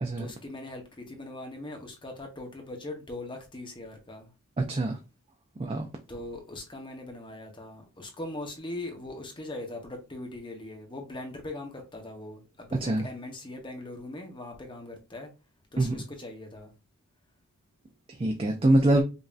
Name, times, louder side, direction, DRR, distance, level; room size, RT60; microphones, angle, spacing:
voice 1, 0.2-4.3 6.1-15.3 15.7-16.7, left 2 dB, 20° left, 0.8 m, -40 dB
voice 2, 4.6-5.0 5.6-5.9 12.7-13.1 15.8-16.0 18.1-19.0, right 1 dB, 25° right, 0.4 m, -24 dB
5.3 x 2.7 x 2.4 m
head